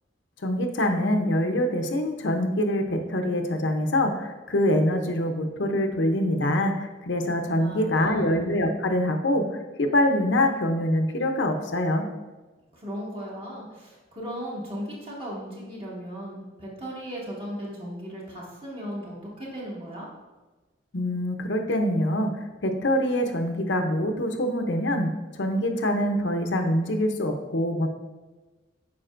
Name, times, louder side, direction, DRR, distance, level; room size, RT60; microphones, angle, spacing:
voice 1, 0.4-9.4 9.8-12.1 20.9-22.3 22.6-25.1 25.4-27.9, left 1 dB, 80° left, 4 dB, 0.8 m, -24 dB
voice 2, 7.6-8.4 12.7-20.1, equal, 30° right, -5 dB, 2.0 m, -37 dB
8.7 x 5.7 x 2.6 m, 1.2 s
head